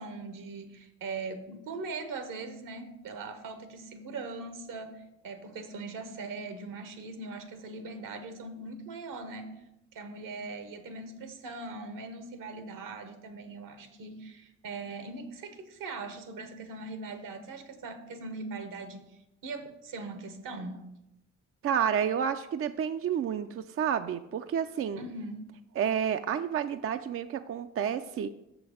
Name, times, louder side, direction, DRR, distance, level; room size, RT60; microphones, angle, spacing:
voice 1, 0.0-9.5 9.9-19.0 19.4-20.8 25.0-25.4, right 3 dB, 70° right, 9 dB, 1.2 m, -40 dB
voice 2, 21.6-25.0 25.8-28.3, right 8 dB, 40° right, 10 dB, 0.4 m, -30 dB
6.7 x 6.0 x 4.9 m, 0.87 s
supercardioid pair, 55°, 34 cm